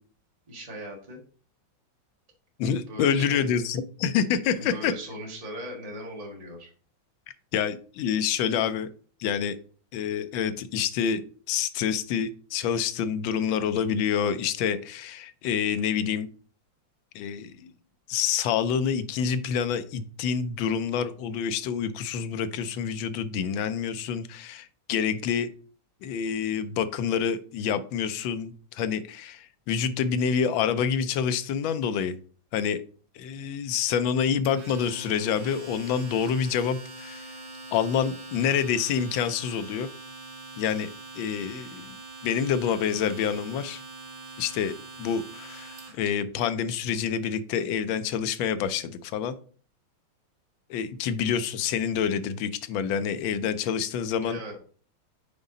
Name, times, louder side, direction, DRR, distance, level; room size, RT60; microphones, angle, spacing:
voice 1, 0.5-1.2 2.9-3.6 4.6-6.7 54.2-54.6, equal, 20° right, -1 dB, 1.4 m, -39 dB
voice 2, 2.6-4.9 7.5-8.9 9.2-9.6 9.9-11.2 11.5-16.3 17.1-17.7 18.1-25.5 26.0-32.2 32.5-32.8 33.1-37.4 37.7-39.9 40.6-40.9 41.2-42.0 42.2-43.8 44.4-49.4 50.7-54.4, left 7 dB, 85° left, 12 dB, 1.4 m, -27 dB
Domestic sounds home sounds, 34.4-46.1, right 2 dB, 75° right, 2.3 m, -43 dB
5.4 x 4.9 x 3.9 m, 0.43 s
omnidirectional pair, 2.1 m